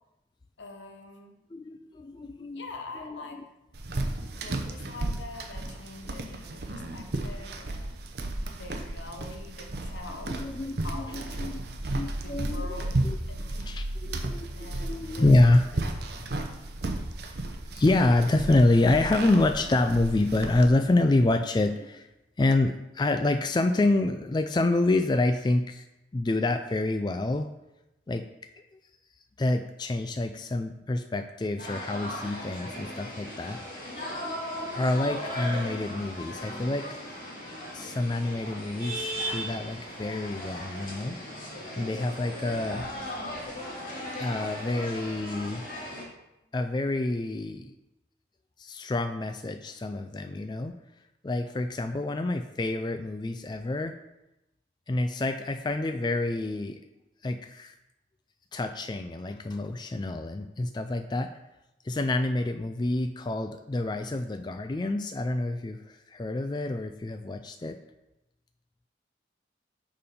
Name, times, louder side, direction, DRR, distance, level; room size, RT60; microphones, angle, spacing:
voice 1, 0.6-1.4 2.5-3.4 4.4-8.0 8.6-10.4 10.8-11.7 12.2-13.0 13.3-13.6 14.6-15.3 15.7-16.2, left 3 dB, 80° left, 3 dB, 1.2 m, -44 dB
voice 2, 1.5-2.7 3.0-3.2 4.2-4.3 10.3-12.6 13.0-13.2 13.6-15.6 17.7-22.1 22.4-25.8 26.1-27.5 28.1-28.3 29.4-33.6 34.7-36.9 37.7-41.2 41.8-42.9 44.2-45.7 46.5-47.7 48.6-50.7 51.2-53.9 54.9-56.8 57.2-57.8 58.5-61.3 61.8-67.8, left 2 dB, 25° left, 7 dB, 0.3 m, -27 dB
sound 1, 3.7-20.7, right 2 dB, 60° right, 0.8 m, -34 dB
sound 2, 31.6-46.0, equal, 45° left, 2.6 m, -37 dB
6.8 x 5.2 x 5.3 m, 0.93 s
head